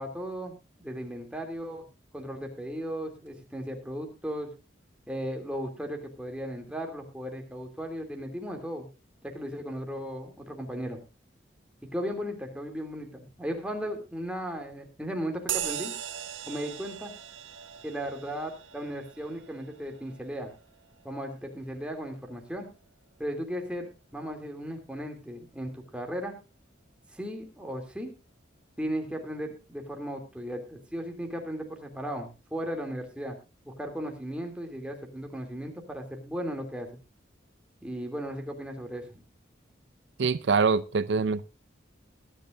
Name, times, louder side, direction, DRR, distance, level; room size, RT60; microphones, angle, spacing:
voice 1, 0.0-1.8 2.1-4.5 5.1-8.9 9.2-11.0 11.9-15.9 16.5-17.1 17.8-20.5 21.0-22.7 23.2-26.3 27.1-28.1 28.8-33.4 33.6-37.0 37.8-39.2, equal, 5° right, 3 dB, 2.7 m, -36 dB
sound 1, 15.5-23.4, right 10 dB, 85° right, 1.1 m, -40 dB
voice 2, 40.2-41.4, right 4 dB, 65° right, 15 dB, 0.5 m, -24 dB
22.5 x 10.0 x 2.5 m, 0.29 s
head